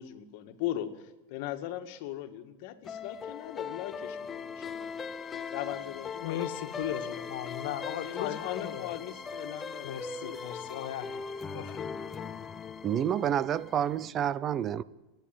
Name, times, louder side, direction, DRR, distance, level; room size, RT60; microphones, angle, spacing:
voice 1, 0.0-5.0 5.5-6.4 6.7-7.3 8.0-10.7, left 12 dB, 60° left, 1.9 m, -39 dB
sound 1, 2.8-14.1, left 5 dB, 20° left, 0.9 m, -40 dB
voice 2, 6.2-8.9 9.8-11.2 11.5-11.9, left 11 dB, 75° left, 1.7 m, -37 dB
voice 3, 12.8-14.8, right 10 dB, 30° right, 0.6 m, -29 dB
29.5 x 10.5 x 9.1 m
supercardioid pair, 145°, 0 cm